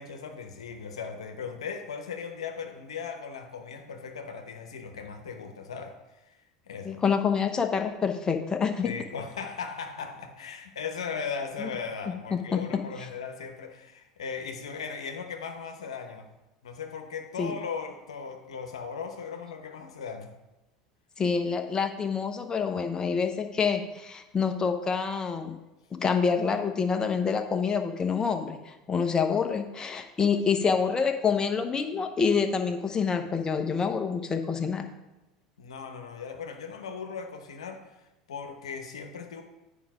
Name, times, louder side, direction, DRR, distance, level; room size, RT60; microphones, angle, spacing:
voice 1, 0.0-6.2 6.7-7.0 8.8-16.3 16.6-20.4 35.6-37.8 38.3-39.4, left 5 dB, 80° left, 5 dB, 1.0 m, -38 dB
voice 2, 6.8-9.0 11.6-11.7 12.3-12.6 17.4-17.5 21.2-25.6 25.9-34.9, left 6 dB, 25° left, 6 dB, 0.9 m, -27 dB
9.1 x 5.0 x 5.0 m, 1.0 s
hypercardioid pair, 80°, 3 cm